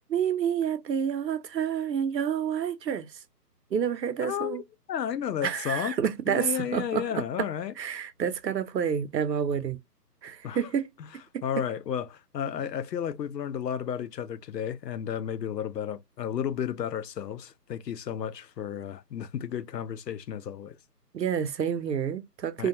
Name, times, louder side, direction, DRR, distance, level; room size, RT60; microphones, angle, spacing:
voice 1, 0.1-3.1 3.7-4.6 5.4-7.2 7.8-9.8 10.2-10.9 21.1-22.7, right 8 dB, 85° right, 0.8 m, -29 dB
voice 2, 4.2-4.6 4.9-5.9 6.3-7.7 10.4-10.6 11.4-20.8 22.6-22.7, left 9 dB, 80° left, 0.6 m, -32 dB
2.3 x 2.2 x 2.7 m
hypercardioid pair, 165°, 49 cm